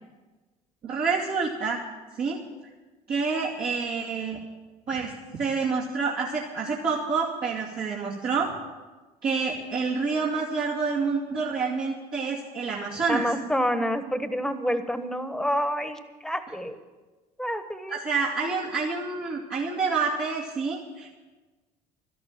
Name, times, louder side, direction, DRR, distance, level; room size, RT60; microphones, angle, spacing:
voice 1, 0.8-1.8 2.2-2.4 3.1-4.4 4.9-5.1 5.4-8.5 9.2-13.3 17.9-21.1, right 4 dB, 55° right, -6 dB, 2.5 m, -28 dB
voice 2, 13.1-16.8 17.4-18.0, equal, 5° left, 10 dB, 1.4 m, -28 dB
12.5 x 12.0 x 7.4 m, 1.2 s
hypercardioid pair, 65°, 19 cm